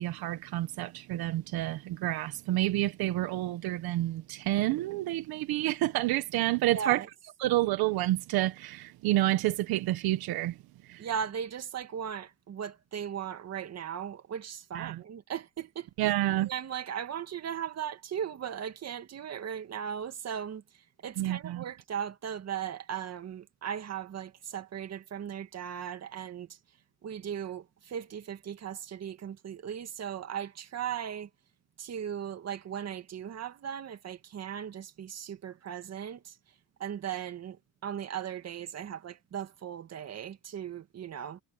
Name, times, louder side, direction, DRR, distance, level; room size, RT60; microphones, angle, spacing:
voice 1, 0.0-7.0 7.4-10.6 10.9-11.1 14.7-15.0 16.0-16.5 21.2-21.6, right 15 dB, 80° right, 1.2 m, -29 dB
voice 2, 6.7-7.1 11.0-16.1 16.5-26.6 27.0-31.3 31.8-36.4 36.8-41.4, right 8 dB, 45° right, 2.0 m, -37 dB
cardioid pair, 120°, 37 cm